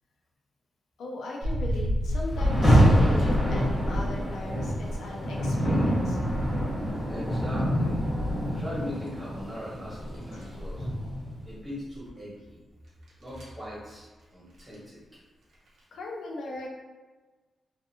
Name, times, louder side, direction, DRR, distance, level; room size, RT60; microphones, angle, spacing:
voice 1, 1.0-6.2 10.3-10.5 15.9-16.7, left 2 dB, 80° left, -1 dB, 0.4 m, -38 dB
sound 1, 1.4-4.9 5.3-9.0 9.4-9.5 9.9-11.2 11.5-11.6 12.1-12.2 13.0-13.6 14.6-14.7 15.5-15.8, left 1 dB, 80° right, 0.8 m, -31 dB
Rain, 2.3-11.4, equal, 15° left, 0.7 m, -26 dB
voice 2, 7.1-8.0 8.2-10.9 11.4-12.6 13.2-14.0 14.3-15.0, left 1 dB, 10° right, -7 dB, 1.1 m, -40 dB
2.5 x 2.4 x 2.7 m, 1.3 s
wide cardioid pair, 170°, 0 cm